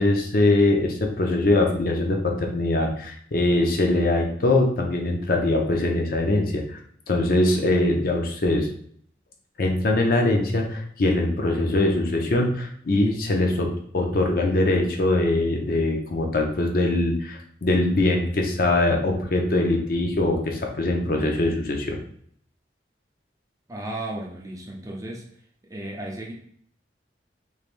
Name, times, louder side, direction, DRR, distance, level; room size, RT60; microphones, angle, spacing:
voice 1, 0.0-6.8 7.1-8.7 9.6-13.7 13.9-22.0, left 2 dB, 55° left, 2 dB, 0.6 m, -22 dB
voice 2, 23.7-25.2 25.7-26.3, right 1 dB, 20° right, -1 dB, 0.5 m, -34 dB
3.3 x 3.2 x 2.5 m, 0.62 s
head